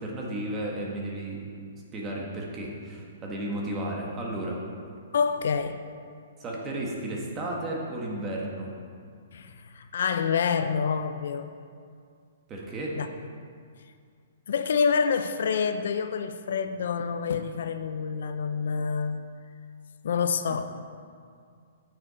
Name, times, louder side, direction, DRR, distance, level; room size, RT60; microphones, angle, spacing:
voice 1, 0.0-1.4 1.9-4.6 6.4-8.7 12.5-13.0, right 1 dB, 20° right, -2 dB, 1.6 m, -33 dB
voice 2, 5.1-5.8 9.3-11.5 13.0-13.1 14.5-19.2 20.0-20.6, left 6 dB, 70° left, 9 dB, 0.5 m, -27 dB
8.8 x 6.9 x 5.0 m, 2.2 s
hypercardioid pair, 155°, 0 cm